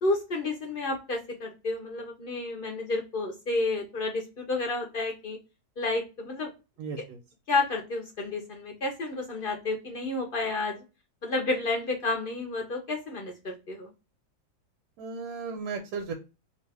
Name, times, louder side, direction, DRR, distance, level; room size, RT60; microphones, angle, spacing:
voice 1, 0.0-5.4 5.8-6.5 7.5-10.8 11.2-13.9, left 2 dB, 65° left, 2 dB, 0.5 m, -30 dB
voice 2, 6.8-7.2 15.0-16.1, right 5 dB, 85° right, 4 dB, 1.1 m, -35 dB
2.6 x 2.4 x 3.3 m, 0.29 s
omnidirectional pair, 1.7 m